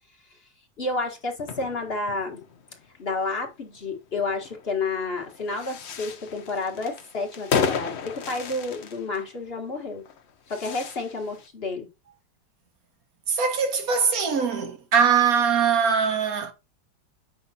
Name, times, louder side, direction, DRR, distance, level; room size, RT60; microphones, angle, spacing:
voice 1, 0.8-2.4 3.0-10.0 10.5-11.9, left 3 dB, 35° left, 1.7 m, -30 dB
sound 1, 1.3-11.5, left 6 dB, 55° left, 0.8 m, -34 dB
voice 2, 13.3-16.5, right 6 dB, 55° right, 1.8 m, -22 dB
7.7 x 5.5 x 2.8 m
omnidirectional pair, 1.9 m